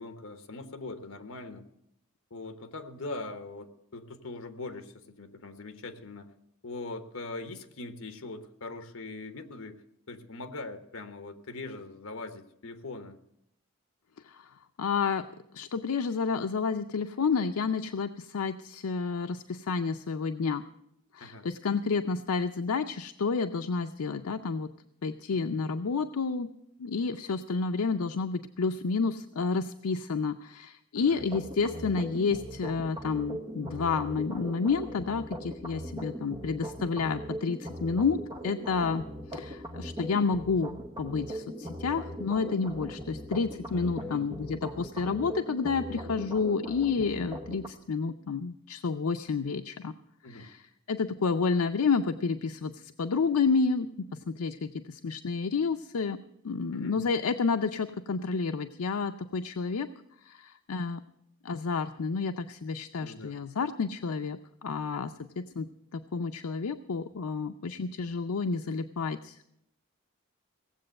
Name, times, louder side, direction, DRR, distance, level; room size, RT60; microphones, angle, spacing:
voice 1, 0.0-1.7 2.3-6.3 6.6-9.8 10.1-13.2 21.2-21.5 25.3-25.5 30.9-31.2 38.1-38.2 44.0-44.3 50.2-50.5 56.7-57.0 63.0-63.4, left 2 dB, 70° left, 8 dB, 1.2 m, -41 dB
voice 2, 14.8-15.3 15.5-20.6 21.1-24.7 25.0-26.5 26.8-39.1 39.3-49.9 50.3-50.6 50.9-59.9 60.2-61.0 61.4-69.4, left 5 dB, 85° left, 8 dB, 0.5 m, -30 dB
sound 1, 31.2-47.7, equal, 20° right, 1.0 m, -40 dB
17.5 x 7.7 x 7.7 m, 0.78 s
head